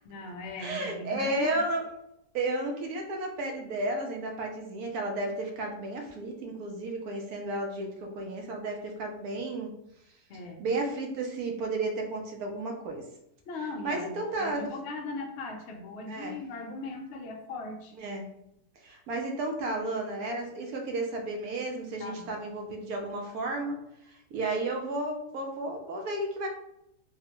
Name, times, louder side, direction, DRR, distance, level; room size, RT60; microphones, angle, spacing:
voice 1, 0.0-1.6 10.3-10.6 13.5-17.9 22.0-22.4, left 3 dB, 70° left, 2 dB, 0.6 m, -39 dB
voice 2, 0.6-1.8 2.3-9.7 10.6-13.0 13.8-14.7 16.1-16.4 18.0-18.3 18.8-23.8 24.3-26.5, right 2 dB, 75° right, 2 dB, 1.0 m, -33 dB
3.5 x 2.1 x 2.9 m, 0.79 s
omnidirectional pair, 1.7 m